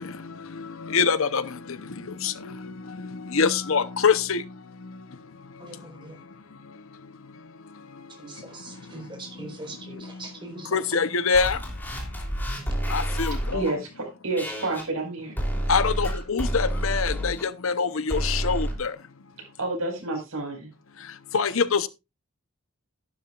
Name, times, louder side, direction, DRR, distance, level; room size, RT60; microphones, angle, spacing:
voice 1, 0.9-1.4 2.2-2.3 3.3-4.4 10.7-11.6 12.9-13.6 15.7-18.9 21.3-21.9, left 5 dB, 75° left, 0.8 m, -24 dB
voice 2, 5.6-6.2 8.1-11.0, right 2 dB, 25° right, 4.1 m, -42 dB
sound 1, 11.3-13.7 14.4-14.8 15.4-17.4 18.1-18.7, right 1 dB, 10° left, 3.3 m, -29 dB
voice 3, 13.3-15.4 19.4-20.7, right 2 dB, 85° right, 5.1 m, -30 dB
12.5 x 11.5 x 2.4 m
head